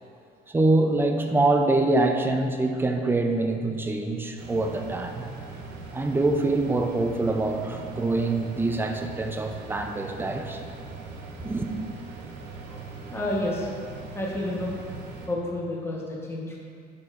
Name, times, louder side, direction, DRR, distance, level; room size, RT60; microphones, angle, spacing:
voice 1, 0.5-5.3 5.9-10.6 11.4-11.7, right 2 dB, 10° right, 4 dB, 0.4 m, -25 dB
sound 1, 4.4-15.3, right 3 dB, 85° right, 0.9 m, -41 dB
voice 2, 13.1-13.7 14.1-14.7 15.3-16.6, left 1 dB, 15° left, -4 dB, 1.1 m, -30 dB
10.5 x 4.4 x 2.5 m, 2.4 s
cardioid pair, 130°, 18 cm